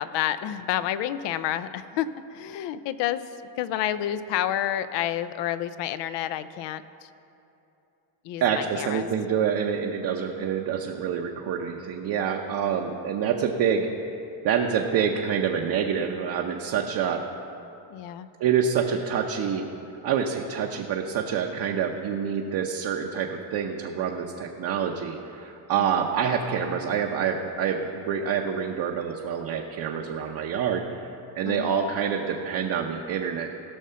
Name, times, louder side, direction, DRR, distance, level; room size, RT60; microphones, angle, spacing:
voice 1, 0.0-3.2 3.6-7.1 8.2-9.1 10.3-10.5 17.9-18.3 25.8-26.1 31.4-31.8, left 11 dB, 65° left, 14 dB, 0.6 m, -29 dB
voice 2, 8.4-13.9 14.4-17.2 18.4-19.7 20.0-31.1 31.4-33.5, right 7 dB, 50° right, 1 dB, 0.8 m, -27 dB
16.5 x 6.2 x 5.6 m, 2.8 s
cardioid pair, 135°, 47 cm